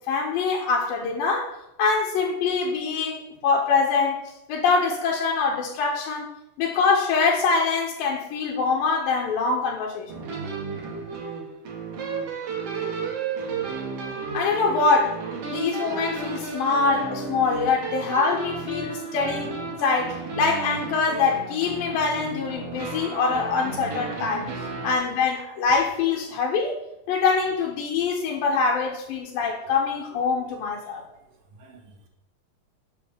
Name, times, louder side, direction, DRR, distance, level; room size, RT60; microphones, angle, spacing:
voice 1, 0.1-4.2 4.5-6.3 6.6-10.1 14.3-24.5 24.8-26.8 27.1-31.0, left 4 dB, 85° left, 2.8 m, -24 dB
sound 1, 10.1-24.9, right 4 dB, 55° right, 2.0 m, -33 dB
voice 2, 18.8-19.5 30.8-31.1 31.6-32.1, right 5 dB, 70° right, 3.0 m, -47 dB
7.3 x 5.5 x 6.7 m
omnidirectional pair, 3.9 m